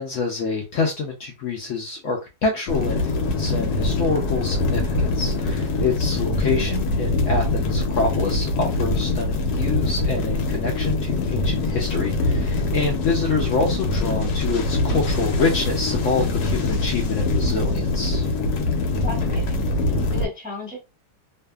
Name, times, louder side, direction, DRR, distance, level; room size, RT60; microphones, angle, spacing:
voice 1, 0.0-18.2, left 4 dB, 65° left, 1 dB, 0.8 m, -26 dB
sound 1, 2.7-20.3, left 2 dB, 90° left, 1.1 m, -23 dB
voice 2, 19.0-20.8, left 1 dB, 10° right, -3 dB, 0.6 m, -35 dB
2.6 x 2.4 x 2.3 m, 0.26 s
omnidirectional pair, 1.7 m